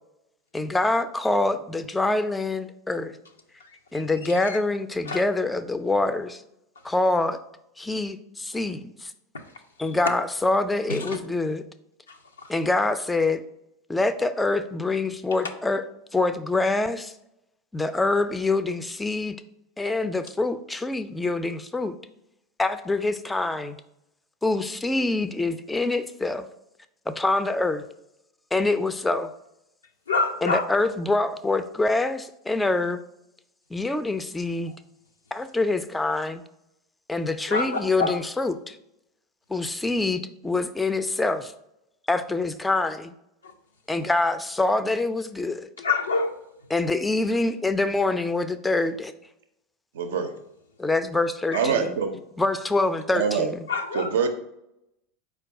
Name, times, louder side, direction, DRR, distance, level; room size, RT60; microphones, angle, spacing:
voice 1, 0.5-3.2 3.9-6.4 6.8-7.4 7.8-9.1 9.8-11.6 12.5-13.4 13.9-15.8 16.1-17.1 17.7-19.4 19.8-22.0 22.6-23.8 24.4-26.5 27.1-27.9 28.5-29.3 30.4-33.0 33.7-34.7 35.3-36.4 37.1-38.8 39.5-41.5 42.1-43.1 43.9-45.7 46.7-49.1 50.8-52.0 52.4-53.6, left 2 dB, 10° left, 11 dB, 0.3 m, -25 dB
voice 2, 3.6-4.6 5.1-5.2 10.9-11.2 12.1-12.5 30.1-30.6 37.5-38.2 43.4-43.5 45.8-46.3 51.5-51.7 53.7-54.1, left 4 dB, 85° left, 4 dB, 0.4 m, -28 dB
voice 3, 49.9-50.3 51.5-52.2 53.1-53.5 53.9-54.3, right 6 dB, 70° right, 6 dB, 0.4 m, -24 dB
4.5 x 2.3 x 4.5 m, 0.82 s
hypercardioid pair, 85°, 0 cm